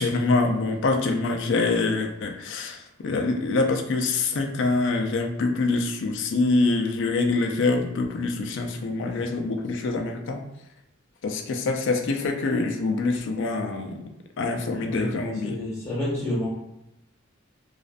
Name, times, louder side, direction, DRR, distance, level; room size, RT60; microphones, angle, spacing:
voice 1, 0.0-10.4 11.2-14.0 14.4-15.6, left 3 dB, 65° left, 4 dB, 0.4 m, -25 dB
voice 2, 14.8-16.5, left 1 dB, 15° left, -8 dB, 1.2 m, -29 dB
2.4 x 2.1 x 2.4 m, 0.94 s
head